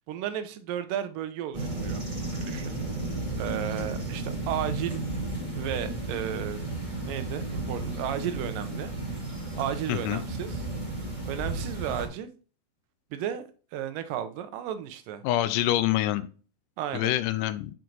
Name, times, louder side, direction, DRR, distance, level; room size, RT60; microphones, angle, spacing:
voice 1, 0.1-2.0 2.3-2.8 3.4-5.1 5.6-6.6 7.1-8.9 9.6-10.7 11.3-12.3 13.1-13.4 13.7-15.2 16.8-17.1, right 10 dB, 90° right, 11 dB, 2.4 m, -34 dB
sound 1, 1.5-12.1, right 2 dB, 10° right, 1.9 m, -33 dB
voice 2, 9.9-10.2 15.2-16.3 16.9-17.7, left 13 dB, 80° left, 13 dB, 2.1 m, -26 dB
6.3 x 4.6 x 3.9 m, 0.38 s
omnidirectional pair, 3.8 m